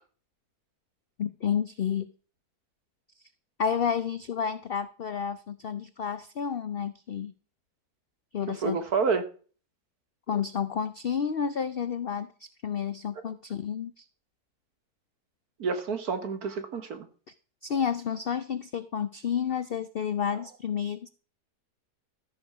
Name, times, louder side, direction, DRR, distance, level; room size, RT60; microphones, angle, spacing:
voice 1, 1.2-2.1 3.6-7.3 8.3-8.8 10.3-14.0 17.3-17.4 17.6-21.1, left 7 dB, 65° left, 12 dB, 0.5 m, -30 dB
voice 2, 8.5-9.2 15.6-17.1, right 5 dB, 70° right, 8 dB, 1.9 m, -29 dB
13.0 x 6.9 x 4.9 m, 0.40 s
omnidirectional pair, 1.7 m